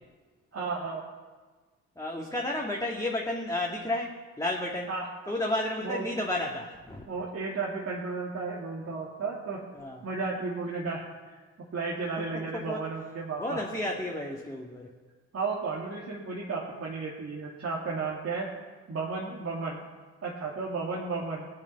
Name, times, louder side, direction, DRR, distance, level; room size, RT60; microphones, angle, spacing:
voice 1, 0.5-1.0 4.9-5.1 5.8-6.1 7.1-9.6 10.0-11.0 11.7-13.6 15.3-18.5 18.9-19.8 20.2-21.5, right 4 dB, 40° right, -4 dB, 2.7 m, -33 dB
voice 2, 2.0-4.9 5.3-7.1 9.7-10.0 12.3-12.9 13.4-14.9, left 1 dB, 10° left, -2 dB, 2.3 m, -32 dB
19.0 x 9.0 x 5.8 m, 1.4 s
figure-of-eight pair, 45°, 36 cm